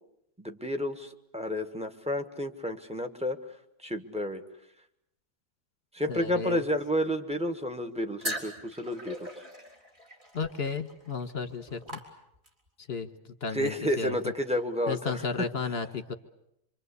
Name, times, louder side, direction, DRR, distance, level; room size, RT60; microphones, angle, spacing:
voice 1, 0.4-3.4 3.8-4.4 5.9-9.1 13.5-15.2, equal, 5° right, 7 dB, 1.3 m, -31 dB
voice 2, 6.1-6.6 10.3-12.0 12.9-13.1 13.4-14.2 14.9-16.1, left 5 dB, 40° left, 9 dB, 1.5 m, -33 dB
sound 1, 8.2-12.7, equal, 25° right, 3.9 m, -40 dB
26.0 x 25.5 x 8.3 m, 0.79 s
omnidirectional pair, 1.8 m